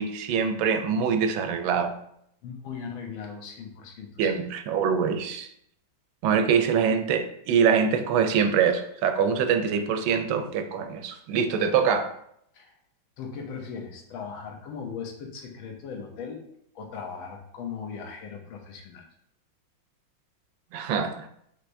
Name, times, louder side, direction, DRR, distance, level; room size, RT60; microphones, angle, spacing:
voice 1, 0.0-1.9 4.2-5.5 6.2-12.1 20.7-21.3, right 6 dB, 85° right, 8 dB, 1.3 m, -24 dB
voice 2, 2.4-4.4 12.5-12.7 13.2-16.4 16.7-19.0, left 6 dB, 90° left, 2 dB, 1.6 m, -38 dB
5.5 x 3.3 x 2.6 m, 0.72 s
omnidirectional pair, 2.1 m